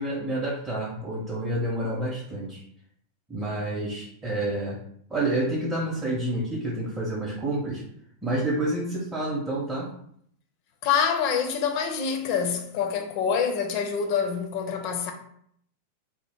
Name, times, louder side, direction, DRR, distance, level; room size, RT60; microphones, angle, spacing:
voice 1, 0.0-2.6 3.3-4.8 5.1-7.8 8.2-9.9, right 1 dB, 15° right, 0.7 m, -29 dB
voice 2, 10.8-15.1, left 7 dB, 45° left, 0.4 m, -26 dB
2.7 x 2.0 x 3.5 m
figure-of-eight pair, 90°, 0 cm